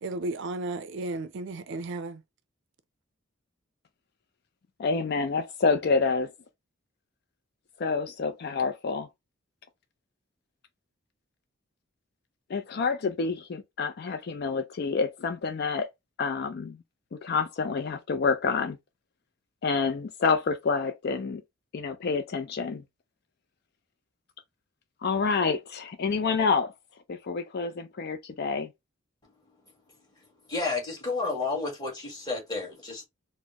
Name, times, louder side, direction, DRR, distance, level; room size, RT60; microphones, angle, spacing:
voice 1, 0.0-2.2, right 2 dB, 60° right, 0.4 m, -34 dB
voice 2, 4.8-6.3 7.8-9.1 12.5-15.9 16.2-16.8 17.1-18.8 19.6-21.4 21.7-22.8 25.0-26.7 27.1-28.7, left 4 dB, 50° left, 0.4 m, -28 dB
voice 3, 30.5-33.0, left 3 dB, 20° left, 1.6 m, -31 dB
4.1 x 2.1 x 2.8 m
head